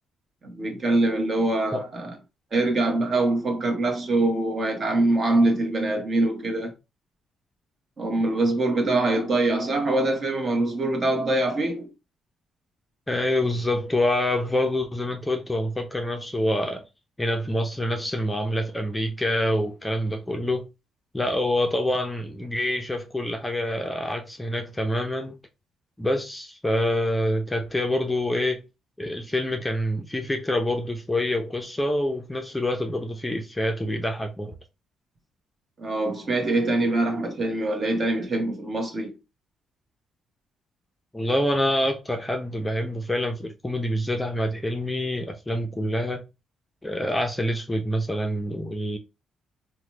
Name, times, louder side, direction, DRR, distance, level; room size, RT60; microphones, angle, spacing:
voice 1, 0.4-2.2 2.5-6.7 8.0-11.9 35.8-39.1, right 2 dB, 40° right, 1.1 m, -24 dB
voice 2, 13.1-16.8 17.2-20.7 21.1-25.4 26.0-28.6 29.0-34.5 41.1-46.2 46.8-49.0, left 1 dB, 10° left, 0.5 m, -26 dB
2.9 x 2.2 x 3.2 m
cardioid pair, 90°, 0 cm